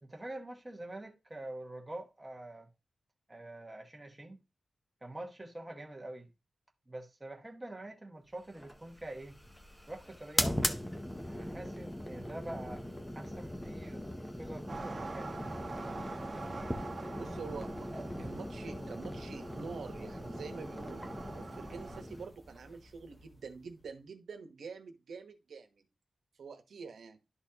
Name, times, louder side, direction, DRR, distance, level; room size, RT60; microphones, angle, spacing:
voice 1, 0.0-2.7 3.3-4.4 5.0-6.3 6.9-9.4 9.9-10.8 11.2-12.9 13.1-14.0 14.4-15.6 17.9-18.4, right 1 dB, 15° right, 1.0 m, -45 dB
sound 1, 8.5-23.8, equal, 5° left, 0.6 m, -40 dB
sound 2, 14.7-22.0, right 3 dB, 35° right, 1.2 m, -45 dB
voice 2, 17.2-25.8 26.4-27.2, right 5 dB, 80° right, 1.0 m, -46 dB
11.5 x 4.1 x 2.8 m
wide cardioid pair, 175°, 0 cm